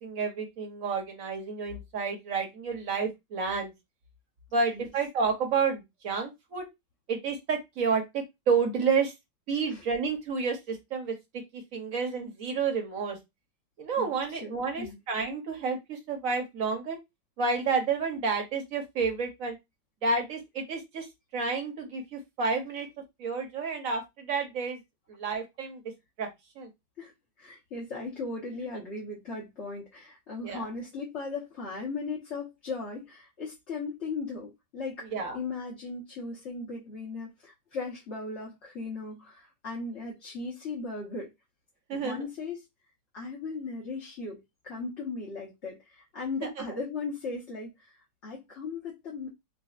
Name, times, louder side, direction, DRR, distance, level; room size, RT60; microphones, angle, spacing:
voice 1, 0.0-3.7 4.5-6.6 7.1-9.1 9.5-11.1 11.5-13.2 13.8-17.0 17.4-19.6 20.0-21.1 21.3-22.9 23.2-24.8 25.1-25.8 26.2-26.3 26.6-26.7 30.4-30.7 35.1-35.4 41.9-42.2 46.4-46.5, right 5 dB, 55° right, 1.2 m, -30 dB
voice 2, 14.4-15.0 27.0-27.1 27.4-41.3 41.9-42.6 43.1-49.3, left 4 dB, 45° left, 1.2 m, -37 dB
5.1 x 2.3 x 2.4 m
omnidirectional pair, 1.9 m